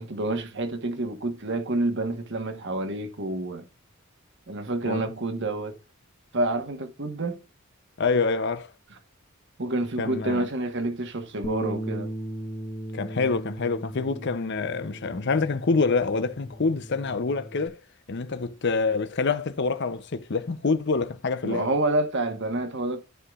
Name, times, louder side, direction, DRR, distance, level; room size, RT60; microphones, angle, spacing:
voice 1, 0.0-3.7 4.5-5.7 6.3-7.4 9.6-12.1 14.1-14.2 21.4-23.0, right 2 dB, 55° right, 1.4 m, -28 dB
voice 2, 8.0-8.7 10.0-10.5 12.9-17.8 18.1-21.7, left 4 dB, 50° left, 0.6 m, -26 dB
Bass guitar, 11.4-17.7, right 1 dB, 35° left, 1.1 m, -37 dB
14.0 x 4.8 x 2.4 m
head